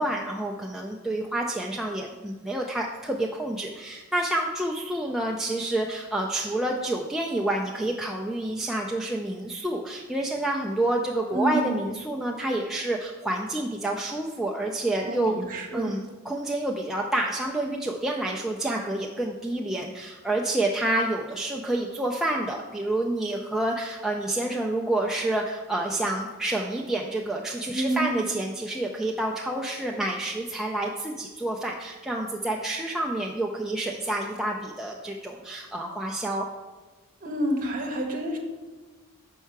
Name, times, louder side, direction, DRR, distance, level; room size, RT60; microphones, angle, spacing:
voice 1, 0.0-15.4 15.7-36.5, right 1 dB, ahead, -1 dB, 0.3 m, -28 dB
voice 2, 11.3-11.8 15.1-16.0 27.7-28.2 37.2-38.4, right 1 dB, 40° right, 1 dB, 1.0 m, -28 dB
5.5 x 4.6 x 5.8 m, 1.2 s
head